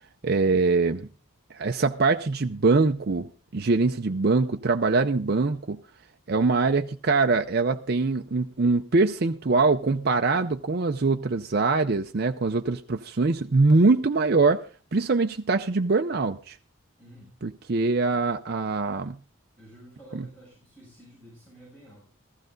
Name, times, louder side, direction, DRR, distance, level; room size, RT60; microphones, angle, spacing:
voice 1, 0.2-1.1 1.5-5.8 6.3-14.6 14.9-16.6 17.4-19.2 20.1-20.2, right 3 dB, 50° right, 0.6 m, -23 dB
voice 2, 17.0-17.3 19.6-22.1, equal, 10° left, 6.5 m, -50 dB
15.0 x 15.0 x 3.9 m
head